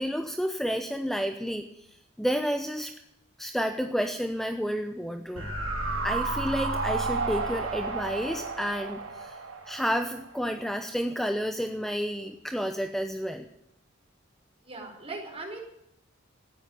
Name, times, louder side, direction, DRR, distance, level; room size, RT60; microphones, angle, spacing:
voice 1, 0.0-1.9 2.2-2.9 3.4-5.5 6.0-9.4 9.7-13.5, equal, ahead, 6 dB, 0.8 m, -30 dB
sound 1, 5.4-10.6 10.9-11.0, right 3 dB, 85° right, 2.8 m, -32 dB
voice 2, 14.6-15.6, right 2 dB, 30° right, 1 dB, 4.9 m, -39 dB
14.5 x 9.8 x 9.2 m, 0.78 s
head